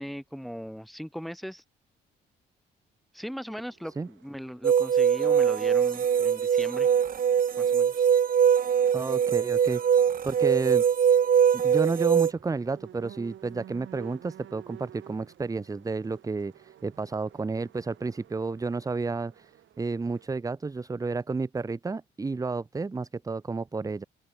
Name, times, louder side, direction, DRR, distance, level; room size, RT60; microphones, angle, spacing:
voice 1, 0.0-1.6 3.1-6.9 7.6-7.9, equal, ahead, 5.9 m, -39 dB
sound 1, 3.5-20.3, right 11 dB, 75° right, 7.3 m, -52 dB
sound 2, 4.6-12.3, right 8 dB, 45° right, 1.1 m, -22 dB
voice 2, 8.9-10.0 10.2-10.8 11.5-19.5 19.8-24.0, right 4 dB, 15° right, 0.6 m, -31 dB
open air
cardioid pair, 90°, 20 cm